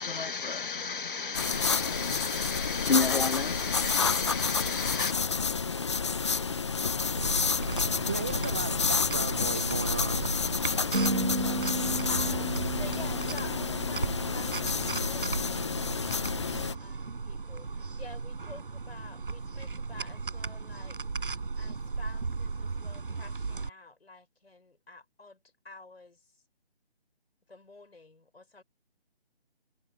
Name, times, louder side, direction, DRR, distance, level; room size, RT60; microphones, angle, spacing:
voice 1, 0.0-5.2, left 5 dB, 55° left, 1.3 m, -32 dB
sound 1, 1.3-16.7, left 5 dB, 25° left, 0.8 m, -30 dB
sound 2, 7.2-23.7, right 4 dB, 55° right, 7.5 m, -36 dB
voice 2, 7.8-10.4, right 6 dB, 10° right, 0.8 m, -36 dB
sound 3, 10.9-15.3, right 2 dB, 85° right, 5.9 m, -34 dB
voice 3, 12.0-14.8 15.1-16.3 16.8-21.0 21.6-25.4 25.6-26.2 27.5-28.6, left 3 dB, 70° left, 6.7 m, -49 dB
figure-of-eight pair, 160°, 32 cm